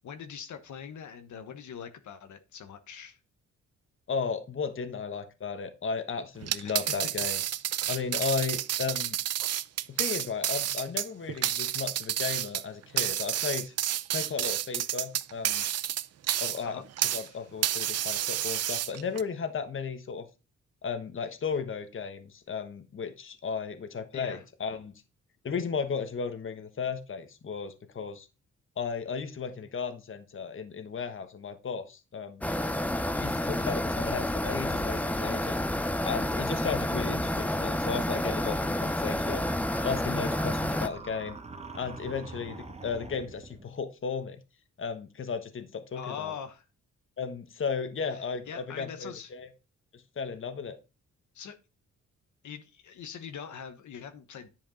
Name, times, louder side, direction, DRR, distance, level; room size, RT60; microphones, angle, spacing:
voice 1, 0.0-3.2 6.6-6.9 16.6-16.8 17.2-17.5 24.1-24.4 45.9-46.6 48.1-49.3 51.3-51.6 52.4-54.5, left 7 dB, 75° left, 8 dB, 1.2 m, -42 dB
voice 2, 4.1-7.4 7.9-9.2 9.9-13.7 14.1-15.6 16.4-16.8 17.1-20.3 20.8-24.9 25.4-28.3 28.8-32.5 33.2-35.6 36.0-39.5 39.8-41.4 41.7-44.4 44.8-46.3 47.2-49.5 49.9-50.8, left 5 dB, 45° left, 9 dB, 1.2 m, -35 dB
sound 1, 6.4-17.3 17.6-19.2, right 11 dB, 55° right, 0.5 m, -30 dB
sound 2, 32.4-40.9, left 1 dB, 5° left, 0.6 m, -29 dB
sound 3, 39.4-43.7, right 3 dB, 20° right, 1.1 m, -45 dB
10.5 x 5.1 x 3.9 m, 0.29 s
cardioid pair, 100°, 30 cm